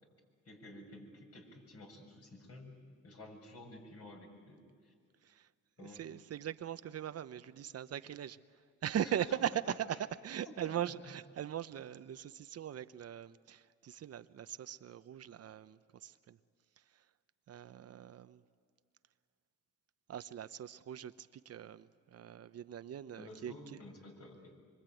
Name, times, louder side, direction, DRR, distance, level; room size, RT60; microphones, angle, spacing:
voice 1, 0.4-4.9 5.8-6.0 9.0-9.4 10.4-10.8 23.2-24.6, left 1 dB, 50° left, 1 dB, 7.3 m, -52 dB
voice 2, 5.8-8.4 8.8-16.4 16.8-17.0 17.5-18.4 20.1-23.8, right 10 dB, 55° right, 12 dB, 0.8 m, -40 dB
25.5 x 24.5 x 9.2 m, 2.1 s
cardioid pair, 90°, 30 cm